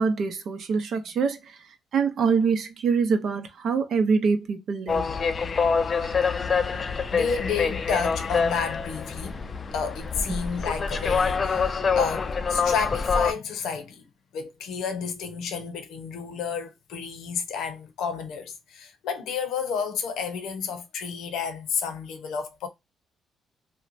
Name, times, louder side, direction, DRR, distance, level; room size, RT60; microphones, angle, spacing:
voice 1, 0.0-1.4 1.9-5.1 10.3-10.4, right 5 dB, 65° right, 0.6 m, -24 dB
sound 1, 4.9-13.3, left 5 dB, 40° left, 0.4 m, -26 dB
voice 2, 7.1-9.4 9.7-14.0 14.3-22.7, left 6 dB, 85° left, 0.7 m, -31 dB
3.0 x 2.1 x 2.5 m
cardioid pair, 90°, 0 cm